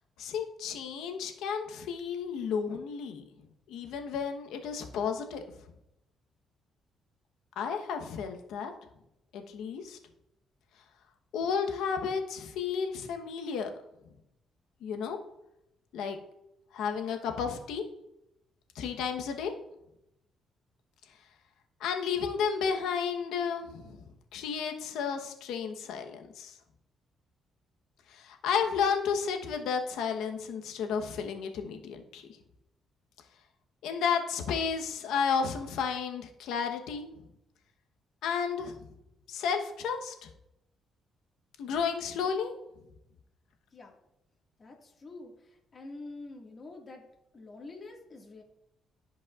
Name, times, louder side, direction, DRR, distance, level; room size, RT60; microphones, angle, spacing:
voice 1, 0.2-3.2 3.7-5.4 7.6-8.7 9.3-10.0 11.3-13.7 14.8-15.2 15.9-16.2 16.7-17.8 18.7-19.5 21.8-24.0 24.3-26.5 28.1-32.3 33.8-37.1 38.2-38.7 39.3-40.3 41.6-42.5, left 6 dB, 85° left, 5 dB, 1.0 m, -32 dB
voice 2, 44.6-47.1 47.3-48.4, left 2 dB, 40° left, 0 dB, 1.9 m, -46 dB
15.0 x 5.3 x 2.5 m, 0.84 s
cardioid pair, 90°, 0 cm